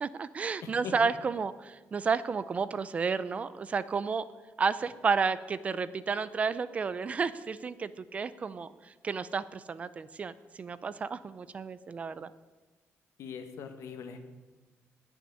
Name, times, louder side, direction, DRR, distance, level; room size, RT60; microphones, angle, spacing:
voice 1, 0.0-4.3 4.6-12.3, right 5 dB, 25° right, 15 dB, 0.4 m, -32 dB
voice 2, 0.6-0.9 13.2-14.2, left 7 dB, 70° left, 6 dB, 1.6 m, -41 dB
17.5 x 6.3 x 9.4 m, 1.3 s
cardioid pair, 175°, 5 cm